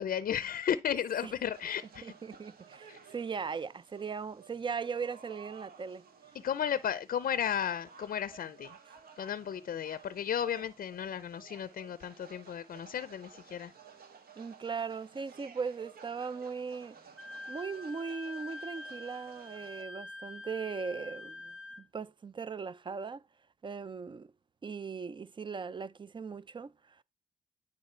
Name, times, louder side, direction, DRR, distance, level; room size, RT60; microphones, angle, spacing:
voice 1, 0.0-2.1 2.9-3.0 6.4-8.7 9.2-13.7, left 9 dB, 65° left, 0.5 m, -34 dB
sound 1, 1.5-19.8, right 6 dB, 70° right, 1.3 m, -55 dB
voice 2, 2.0-6.1 14.4-17.0 17.5-23.2 23.6-24.3 24.6-27.0, right 5 dB, 30° right, 0.4 m, -39 dB
Wind instrument woodwind instrument, 17.2-21.8, left 2 dB, 5° right, 1.4 m, -45 dB
9.6 x 4.2 x 4.4 m
cardioid pair, 75°, 16 cm